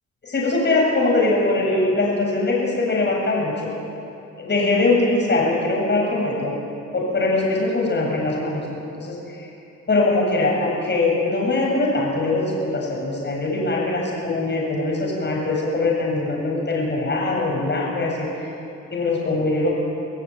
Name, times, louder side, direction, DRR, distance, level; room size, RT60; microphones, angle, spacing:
voice 1, 0.2-3.7 4.4-6.6 6.9-9.5 9.9-18.3 18.9-19.7, left 2 dB, 35° left, -2 dB, 7.9 m, -22 dB
26.0 x 15.0 x 9.4 m, 2.9 s
cardioid pair, 90°, 30 cm